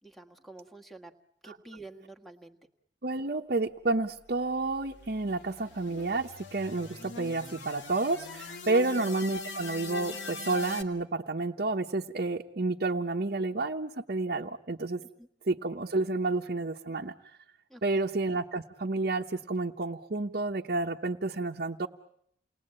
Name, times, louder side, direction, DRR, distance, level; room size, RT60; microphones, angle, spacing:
voice 1, 0.0-1.1 1.4-2.6 8.8-9.0 15.0-15.3 17.7-18.1, right 2 dB, ahead, 7 dB, 1.5 m, -49 dB
voice 2, 3.0-15.0 15.5-17.1 17.8-21.9, right 3 dB, 55° right, 0 dB, 1.0 m, -30 dB
sound 1, 4.4-10.8, left 3 dB, 85° left, 2.3 m, -41 dB
29.5 x 20.5 x 8.8 m, 0.69 s
head